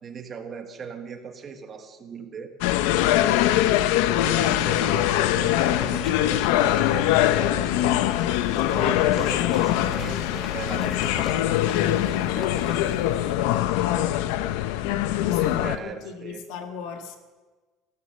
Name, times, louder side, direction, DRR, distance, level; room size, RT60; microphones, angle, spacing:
voice 1, 0.0-2.5 4.2-8.1 8.7-14.2 15.2-16.4, right 6 dB, 30° right, 5 dB, 1.6 m, -39 dB
sound 1, 2.6-15.8, left 13 dB, 85° left, 0.7 m, -23 dB
sound 2, 3.5-13.5, left 4 dB, 25° left, 1.6 m, -39 dB
voice 2, 15.1-17.2, left 7 dB, 70° left, 5 dB, 2.0 m, -37 dB
16.0 x 12.5 x 6.7 m, 1.3 s
cardioid pair, 160°, 0 cm